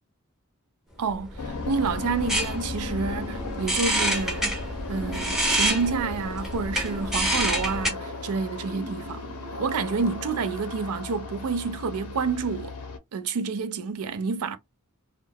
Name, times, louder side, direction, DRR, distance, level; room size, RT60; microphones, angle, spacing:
voice 1, 1.0-4.6 4.9-9.3 9.6-12.8 13.1-14.6, right 5 dB, 75° right, 0.4 m, -29 dB
sound 1, 1.1-7.9, right 1 dB, ahead, 0.6 m, -28 dB
sound 2, 1.4-13.0, left 4 dB, 85° left, 0.6 m, -37 dB
sound 3, 3.0-10.3, right 1 dB, 55° right, 0.9 m, -41 dB
2.2 x 2.2 x 3.2 m
head